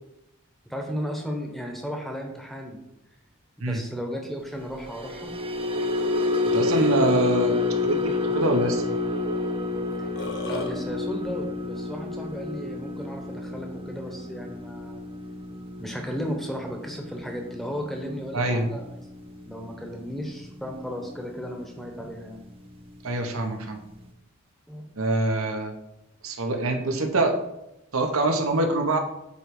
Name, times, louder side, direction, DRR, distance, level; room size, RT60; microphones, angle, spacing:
voice 1, 0.7-2.8 3.6-5.3 10.0-10.1 10.4-15.0 15.8-19.0 19.5-22.4 24.7-24.8, equal, ahead, 2 dB, 1.0 m, -35 dB
sound 1, 4.8-21.2 21.5-21.8 22.1-22.4, left 3 dB, 25° right, 0.6 m, -29 dB
voice 2, 6.5-8.8 18.3-18.7 23.0-23.8 25.0-25.7 26.2-27.4 27.9-29.0, right 2 dB, 80° right, 4 dB, 1.0 m, -25 dB
Burping eructation, 9.9-10.7, left 2 dB, 60° left, 1.0 m, -34 dB
8.1 x 3.2 x 4.8 m, 0.89 s
head